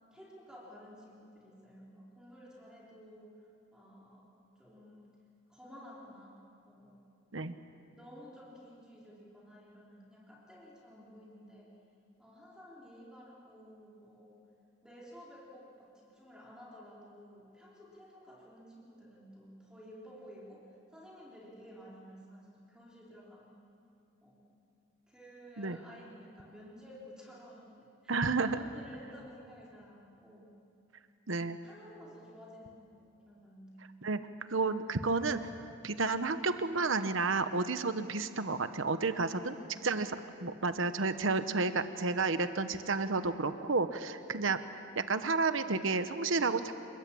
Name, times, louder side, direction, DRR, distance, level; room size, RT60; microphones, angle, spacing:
voice 1, 0.1-4.3 4.6-5.2 5.5-7.0 7.9-11.8 12.2-14.4 14.8-23.6 24.2-24.5 25.1-30.5 31.6-33.9 39.3-40.0, equal, 5° right, -5 dB, 3.6 m, -53 dB
voice 2, 28.1-28.6 31.3-31.6 34.0-34.2 34.5-35.5 35.8-39.5 39.8-46.7, right 3 dB, 80° right, 10 dB, 1.1 m, -31 dB
28.5 x 22.0 x 8.7 m, 2.6 s
head